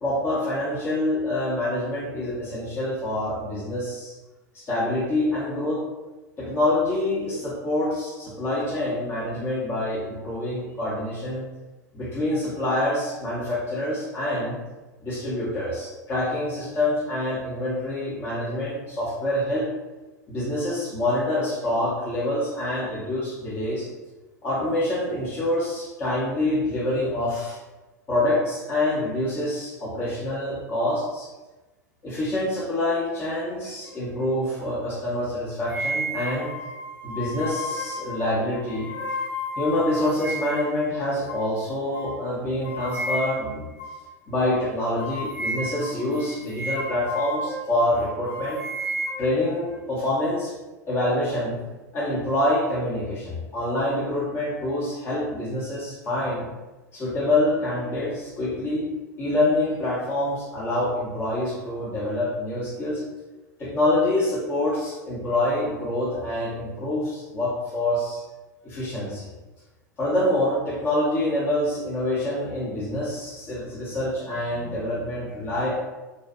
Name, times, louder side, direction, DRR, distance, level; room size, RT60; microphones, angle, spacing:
voice 1, 0.0-4.1 4.5-5.8 6.4-11.4 11.9-14.6 15.0-19.7 20.3-23.9 24.4-27.6 28.1-31.3 32.0-36.5 37.0-39.3 39.6-43.7 44.3-48.6 49.2-50.5 50.9-51.6 51.9-56.5 56.9-58.9 59.2-63.0 63.6-68.2 68.6-69.3 70.0-75.7, left 1 dB, 25° left, -8 dB, 0.7 m, -26 dB
sound 1, 35.7-40.8 41.3-41.5 41.9-42.1 42.6-43.5 43.8-44.0 44.4-44.5 45.0-47.7 48.0-49.8, equal, 60° left, 1.1 m, -32 dB
2.6 x 2.1 x 2.4 m, 1.1 s
figure-of-eight pair, 85°, 9 cm